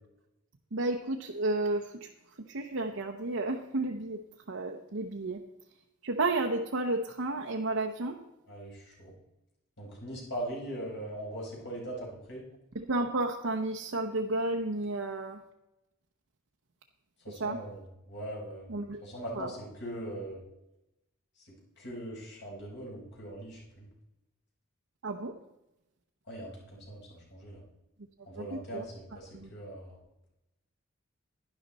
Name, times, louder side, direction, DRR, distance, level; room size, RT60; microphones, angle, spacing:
voice 1, 0.7-2.1 2.4-4.2 4.5-5.4 6.0-8.2 12.7-15.4 17.3-17.6 18.7-19.0 19.3-19.5 25.0-25.3 28.4-28.9 29.1-29.5, right 2 dB, 70° right, 2 dB, 0.8 m, -32 dB
voice 2, 8.5-9.1 9.8-12.4 17.2-18.7 19.0-20.4 21.4-23.9 26.3-27.6 28.2-30.0, right 1 dB, 55° left, -3 dB, 4.6 m, -41 dB
11.5 x 11.0 x 4.1 m, 0.92 s
head